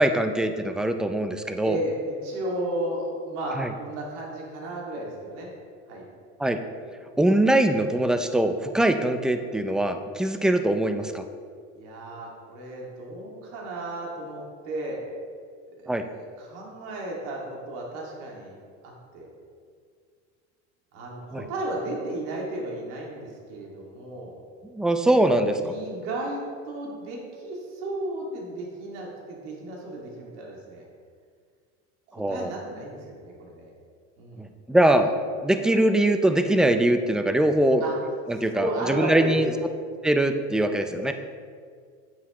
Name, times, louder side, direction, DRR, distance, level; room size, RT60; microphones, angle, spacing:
voice 1, 0.0-1.8 3.6-3.7 6.4-6.6 7.2-11.2 15.9-16.0 21.3-21.4 24.7-25.6 32.1-32.5 34.4-35.1 35.4-37.8 38.3-39.5 40.0-41.1, right 1 dB, ahead, 8 dB, 0.4 m, -22 dB
voice 2, 1.6-5.5 5.9-6.1 8.5-8.8 11.7-15.0 15.8-18.6 18.8-19.3 20.9-24.4 25.5-26.4 26.7-30.9 32.1-33.7 34.2-34.5 37.8-38.0 38.3-39.3, right 1 dB, 80° right, -2 dB, 2.2 m, -34 dB
9.2 x 8.6 x 3.0 m, 2.1 s
supercardioid pair, 100°, 35 cm